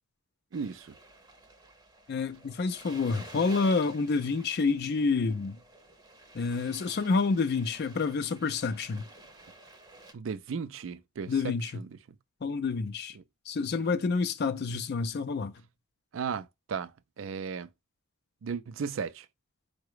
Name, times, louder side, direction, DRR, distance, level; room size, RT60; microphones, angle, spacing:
sound 1, 0.5-10.1, right 2 dB, 20° right, 0.7 m, -51 dB
voice 1, 0.5-0.9 10.1-11.9 13.1-13.2 16.1-16.9 17.2-17.7 18.4-19.3, right 6 dB, 65° right, 0.4 m, -35 dB
voice 2, 2.1-5.6 6.3-9.0 11.3-11.7 12.4-13.2 13.5-15.5, left 4 dB, 50° left, 0.4 m, -28 dB
4.8 x 2.1 x 4.7 m
head